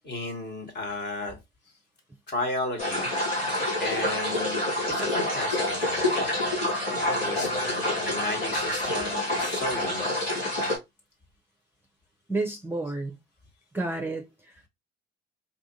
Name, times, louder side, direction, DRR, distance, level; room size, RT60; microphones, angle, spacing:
voice 1, 0.0-1.4 2.3-3.1 3.8-6.4 7.0-10.3, left 2 dB, 35° left, 1.5 m, -34 dB
sound 1, 2.8-10.8, left 1 dB, 85° left, 1.7 m, -27 dB
voice 2, 12.3-13.2 13.7-14.7, right 2 dB, 5° right, 0.7 m, -31 dB
4.2 x 2.5 x 2.8 m
figure-of-eight pair, 55°, 30 cm